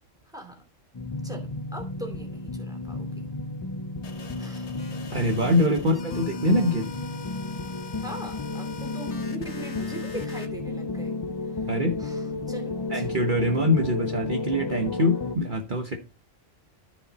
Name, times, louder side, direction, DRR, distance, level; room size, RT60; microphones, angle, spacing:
voice 1, 0.3-0.6 1.2-3.3 4.4-4.7 5.2-5.9 8.0-11.2 11.5-11.7 12.0-13.3, right 1 dB, 5° right, 3 dB, 2.9 m, -41 dB
sound 1, 0.9-15.4, left 3 dB, 30° left, 0.4 m, -33 dB
sound 2, 4.0-10.5, left 5 dB, 60° left, 1.5 m, -44 dB
voice 2, 5.1-6.9 11.7-12.0 12.9-16.0, left 1 dB, 40° right, 4 dB, 1.2 m, -24 dB
13.5 x 5.4 x 4.1 m, 0.32 s
omnidirectional pair, 1.3 m